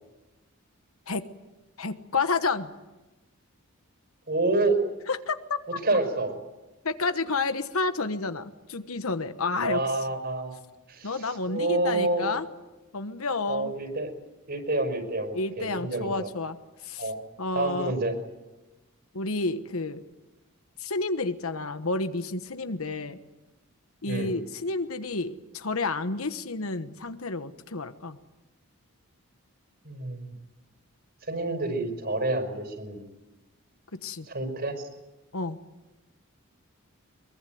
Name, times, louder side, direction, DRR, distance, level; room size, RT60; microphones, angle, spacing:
voice 1, 1.8-2.7 5.1-5.6 6.8-9.8 11.0-12.5 12.9-13.7 15.3-16.6 16.8-17.1 17.4-17.9 19.1-20.0 20.8-23.2 24.0-28.2 34.0-34.3 35.3-35.6, left 3 dB, 75° left, 10 dB, 1.3 m, -30 dB
voice 2, 4.3-4.8 5.7-6.3 9.6-10.6 10.9-11.1 11.5-12.3 13.5-14.1 14.5-16.3 17.0-17.2 17.5-18.2 24.0-24.3 29.8-30.3 31.3-33.1 34.3-34.9, right 2 dB, 50° right, 8 dB, 5.4 m, -28 dB
23.0 x 22.5 x 9.3 m, 1.1 s
head